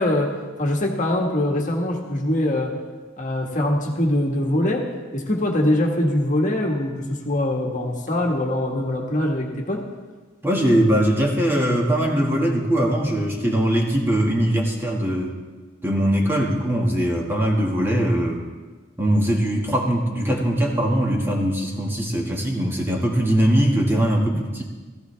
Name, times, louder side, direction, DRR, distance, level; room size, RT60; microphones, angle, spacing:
voice 1, 0.0-2.8 3.2-9.8 24.3-24.4, left 1 dB, 40° left, 1 dB, 1.6 m, -23 dB
voice 2, 10.4-15.4 15.8-18.4 19.0-24.6, right 1 dB, 10° right, -1 dB, 1.7 m, -21 dB
15.5 x 15.0 x 3.4 m, 1.3 s
head